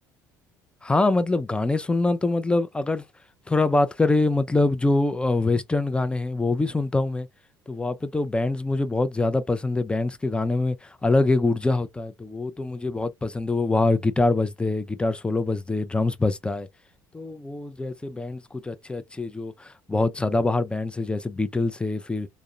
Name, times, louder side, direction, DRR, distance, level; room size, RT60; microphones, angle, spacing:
voice 1, 0.8-3.0 3.5-7.3 7.7-16.7 17.1-22.3, left 2 dB, 10° left, 0.4 m, -24 dB
3.6 x 2.1 x 2.4 m
figure-of-eight pair, 60°, 11 cm